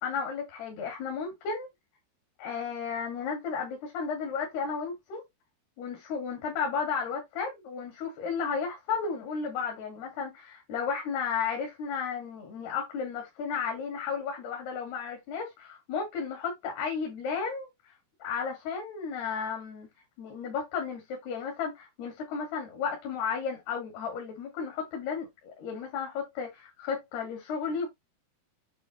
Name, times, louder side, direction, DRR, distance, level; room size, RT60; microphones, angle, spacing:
voice 1, 0.0-1.7 2.4-5.2 5.8-17.7 18.2-19.9 20.2-27.9, left 6 dB, 80° left, 4.7 m, -33 dB
10.5 x 3.5 x 3.5 m
omnidirectional pair, 4.6 m